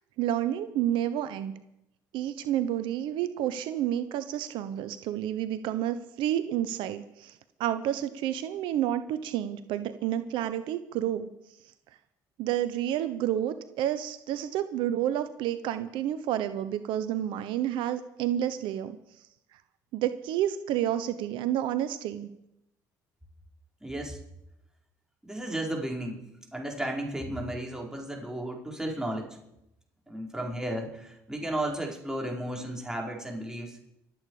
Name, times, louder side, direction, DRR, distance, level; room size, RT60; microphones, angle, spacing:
voice 1, 0.2-1.5 2.1-11.3 12.4-19.0 19.5-19.6 19.9-22.3, right 11 dB, 75° right, 12 dB, 0.8 m, -30 dB
voice 2, 23.8-24.2 25.2-26.2 26.5-29.3 30.1-33.8, right 1 dB, 5° right, 0 dB, 4.8 m, -34 dB
25.0 x 8.7 x 4.9 m, 0.85 s
supercardioid pair, 65°, 8 cm